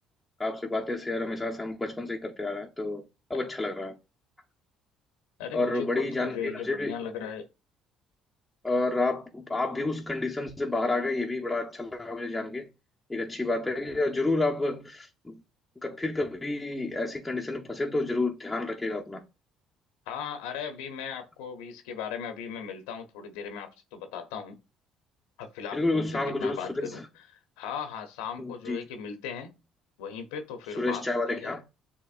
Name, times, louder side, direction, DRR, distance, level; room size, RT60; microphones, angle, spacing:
voice 1, 0.4-3.0 3.3-4.0 5.5-6.9 8.6-12.7 13.1-15.4 15.8-19.2 25.7-26.9 28.4-28.8 30.8-31.6, left 2 dB, 10° left, 0.7 m, -30 dB
voice 2, 5.4-7.5 20.1-24.6 25.4-27.0 27.3-29.5 30.0-31.6, left 7 dB, 90° left, 0.7 m, -37 dB
6.7 x 2.8 x 2.4 m
supercardioid pair, 75°, 0 cm